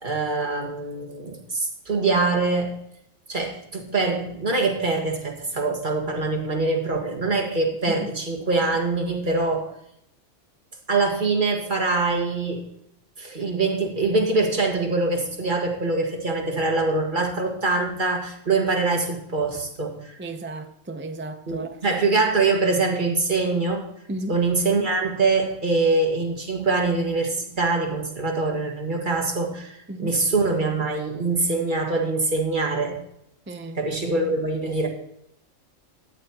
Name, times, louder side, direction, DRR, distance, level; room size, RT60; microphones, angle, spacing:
voice 1, 0.0-2.7 3.3-9.7 10.9-12.7 13.2-20.1 21.5-23.9 24.3-33.0 33.7-34.9, right 3 dB, 40° right, 1.8 m, -24 dB
voice 2, 20.2-21.8 24.1-24.4 29.9-30.1 33.5-33.8, right 1 dB, 20° right, 0.3 m, -34 dB
13.0 x 9.7 x 2.9 m
omnidirectional pair, 1.3 m